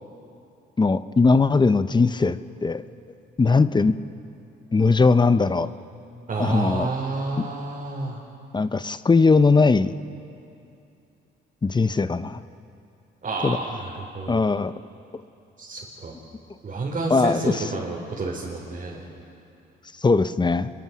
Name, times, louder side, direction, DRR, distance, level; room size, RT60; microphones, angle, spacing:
voice 1, 0.8-2.8 3.4-4.0 4.7-5.7 6.4-6.9 8.5-9.9 11.6-12.4 13.4-13.6 14.3-14.7 17.1-17.7 20.0-20.7, left 4 dB, 20° left, 13 dB, 0.7 m, -19 dB
voice 2, 6.3-8.2 13.2-14.4 15.6-16.2 16.6-19.0, right 3 dB, 40° right, -4 dB, 4.2 m, -30 dB
29.0 x 22.0 x 6.2 m, 2.7 s
cardioid pair, 90°, 20 cm